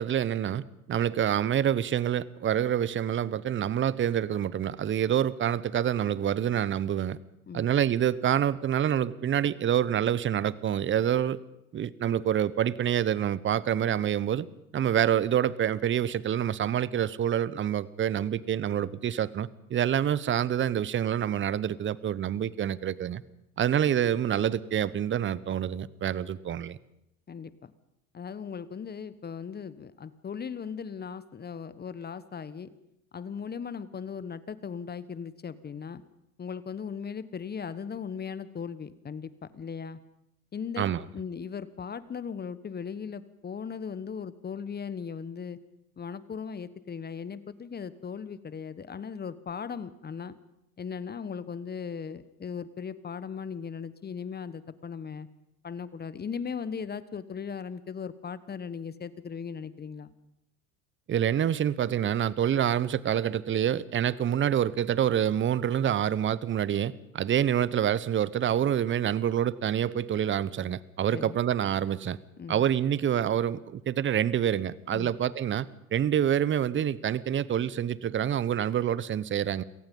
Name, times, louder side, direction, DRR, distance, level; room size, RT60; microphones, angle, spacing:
voice 1, 0.0-7.2 7.5-11.4 11.7-14.5 14.7-23.2 23.6-26.8 40.8-41.0 61.1-72.2 72.5-79.6, right 10 dB, 25° right, 20 dB, 0.9 m, -27 dB
voice 2, 27.3-27.7 28.1-32.7 33.1-36.0 36.4-40.0 40.5-40.8 41.1-45.6 46.0-50.4 50.8-55.3 55.6-60.1 71.1-71.4 72.4-72.6 74.9-75.1, left 6 dB, 20° left, 16 dB, 1.2 m, -38 dB
28.5 x 18.0 x 5.4 m, 0.83 s
hypercardioid pair, 85°, 43 cm